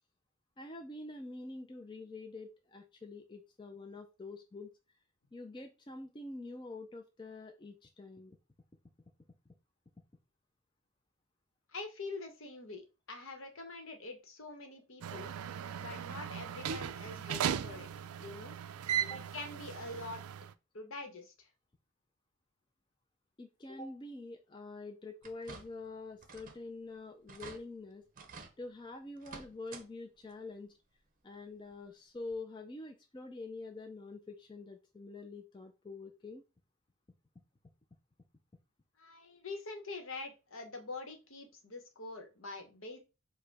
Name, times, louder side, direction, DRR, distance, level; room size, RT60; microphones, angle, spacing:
voice 1, 0.6-4.7 5.3-8.4 19.0-19.2 23.4-28.0 28.6-30.8 31.2-36.4, left 2 dB, 20° left, 4 dB, 0.4 m, -46 dB
voice 2, 11.7-15.3 15.8-17.9 18.2-18.5 19.1-20.2 20.7-21.5 39.0-43.0, left 3 dB, 65° left, 6 dB, 1.0 m, -45 dB
sound 1, 15.0-20.5, right 9 dB, 85° right, 0.4 m, -37 dB
sound 2, 25.2-25.9 26.2-26.7 27.0-27.1 27.3-27.6 28.2-28.5 29.2-29.9 30.2-30.3 31.7-31.8 32.3-32.4, right 4 dB, 40° right, 0.6 m, -50 dB
4.7 x 2.1 x 4.6 m, 0.29 s
head